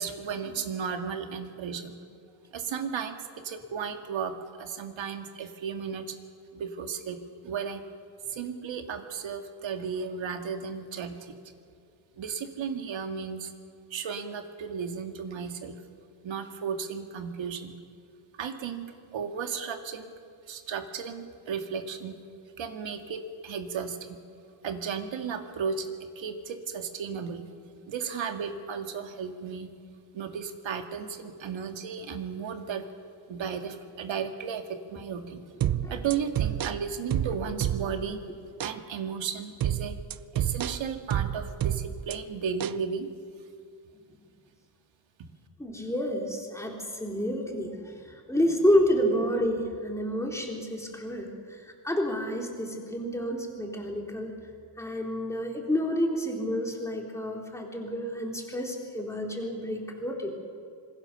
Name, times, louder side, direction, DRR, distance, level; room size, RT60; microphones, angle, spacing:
voice 1, 0.0-1.9 2.5-6.2 6.5-7.2 7.4-7.8 8.3-11.3 12.2-13.5 13.9-15.7 16.2-17.7 18.4-20.1 20.5-22.2 22.6-24.2 24.6-27.4 27.9-29.7 30.1-32.8 33.3-35.5 35.9-38.2 38.6-40.0 40.3-43.1, right 6 dB, 70° right, 6 dB, 2.1 m, -34 dB
voice 2, 35.6-36.0 45.6-51.3 51.8-54.3 54.8-60.3, equal, 5° left, 0 dB, 3.7 m, -29 dB
sound 1, 35.6-38.1 38.6-38.8 39.6-42.2 42.6-42.8, right 11 dB, 45° right, 0.6 m, -29 dB
26.5 x 21.0 x 6.9 m, 2.2 s
cardioid pair, 140°, 48 cm